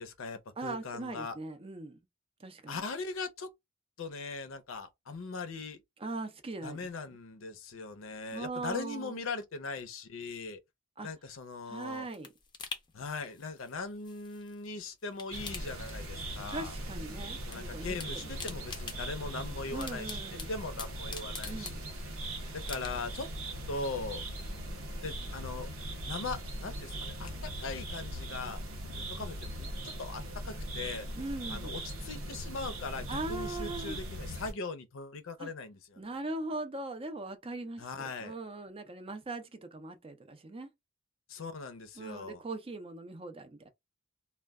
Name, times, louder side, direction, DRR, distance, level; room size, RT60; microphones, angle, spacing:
voice 1, 0.0-1.4 2.7-3.5 4.0-5.8 6.6-10.6 11.0-12.1 12.9-16.8 17.5-20.2 20.5-21.9 22.5-23.3 23.7-24.2 25.0-25.7 26.1-28.6 28.9-31.1 31.5-36.0 37.8-38.3 41.3-42.4, left 3 dB, 70° left, 0.6 m, -40 dB
voice 2, 0.6-2.0 2.4-2.8 6.0-6.9 8.3-9.2 11.0-11.1 11.7-12.3 16.5-18.0 18.2-18.4 19.7-20.5 21.4-21.9 31.2-31.7 33.1-34.0 35.4-35.5 36.0-40.7 42.0-43.7, right 2 dB, 30° right, 0.5 m, -40 dB
sound 1, 11.4-14.7 15.0-16.5 16.8-17.6 17.8-22.2 22.6-23.3 23.7-23.8, left 5 dB, 25° left, 0.5 m, -46 dB
sound 2, 15.3-34.5, right 1 dB, 80° right, 0.8 m, -40 dB
2.2 x 2.1 x 3.4 m
head